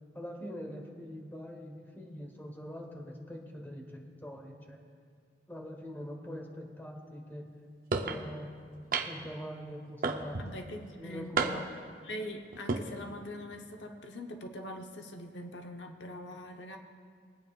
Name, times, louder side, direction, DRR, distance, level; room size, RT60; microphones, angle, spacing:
voice 1, 0.1-4.8 5.5-7.5 8.0-8.5 9.0-10.4 11.0-11.6, equal, 10° left, 1 dB, 1.1 m, -43 dB
sound 1, 7.9-8.2 8.9-9.3 10.0-10.5 11.4-11.8 12.5-12.8, right 4 dB, 50° right, 0.6 m, -31 dB
voice 2, 10.4-11.6 12.0-16.8, equal, 85° left, 4 dB, 0.9 m, -43 dB
22.5 x 9.2 x 2.4 m, 2.1 s
head